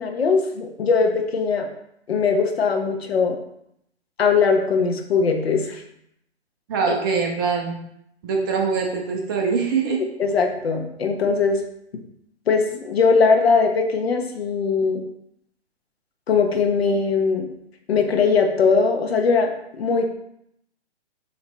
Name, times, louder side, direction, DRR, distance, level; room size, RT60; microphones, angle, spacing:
voice 1, 0.0-1.7 2.1-3.4 4.2-5.8 6.9-7.0 10.2-11.6 12.5-15.0 16.3-17.5 17.9-20.1, left 5 dB, 65° left, 3 dB, 1.2 m, -20 dB
voice 2, 6.7-7.7 8.2-10.0, right 5 dB, 20° right, 1 dB, 0.6 m, -23 dB
7.3 x 3.1 x 4.1 m, 0.76 s
figure-of-eight pair, 135°, 34 cm